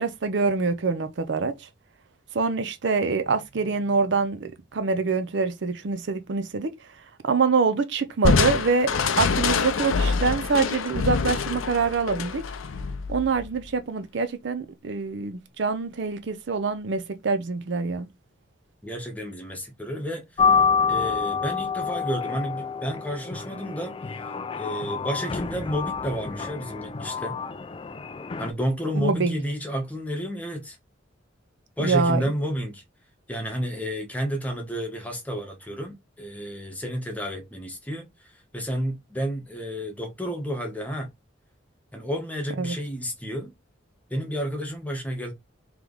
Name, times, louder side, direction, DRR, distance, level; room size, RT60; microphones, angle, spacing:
voice 1, 0.0-1.5 2.3-6.7 7.2-12.4 13.1-18.1 29.0-29.3 31.8-32.2 42.6-42.8, right 4 dB, 60° right, 0.5 m, -25 dB
Crushing, 8.2-13.6, left 5 dB, 85° left, 0.6 m, -25 dB
voice 2, 18.8-20.6 20.9-27.4 28.4-30.8 31.8-32.8 33.3-41.1 41.9-43.5 44.1-45.3, equal, 10° left, 1.0 m, -31 dB
sound 1, 20.4-28.5, left 5 dB, 25° left, 0.3 m, -27 dB
3.2 x 3.1 x 3.8 m
head